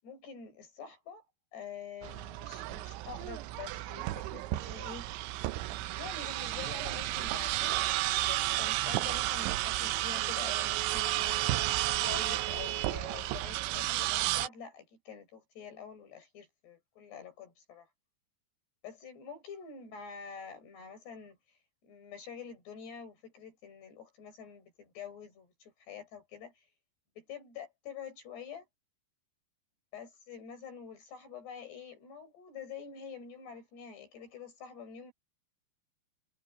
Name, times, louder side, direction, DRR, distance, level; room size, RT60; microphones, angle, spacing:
voice 1, 0.0-1.2 1.5-5.3 5.9-17.9 18.8-26.7 27.2-28.7 29.9-35.1, left 7 dB, 65° left, 9.1 m, -47 dB
sound 1, 2.0-14.5, right 16 dB, 90° right, 3.2 m, -32 dB
omnidirectional pair, 5.2 m